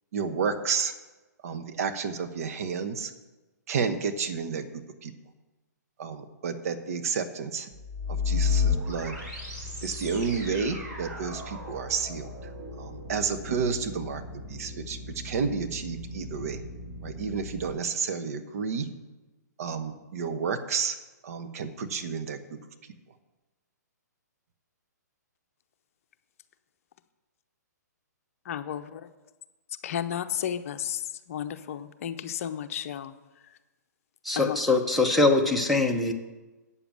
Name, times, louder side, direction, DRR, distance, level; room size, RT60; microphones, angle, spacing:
voice 1, 0.1-0.9 1.4-3.1 3.7-4.6 5.0-5.1 6.0-7.7 8.1-9.2 9.8-12.3 12.8-15.0 15.2-16.6 17.0-18.9 19.6-21.0 21.2-22.6, right 5 dB, 55° right, 8 dB, 1.0 m, -31 dB
sound 1, 7.7-17.7, left 5 dB, 35° right, 3.4 m, -34 dB
voice 2, 28.4-29.0 29.8-33.1 34.4-34.6, left 9 dB, 50° left, 10 dB, 0.7 m, -33 dB
voice 3, 34.2-36.1, left 2 dB, ahead, 3 dB, 1.0 m, -23 dB
8.5 x 7.0 x 7.5 m, 1.1 s
hypercardioid pair, 130°, 10 cm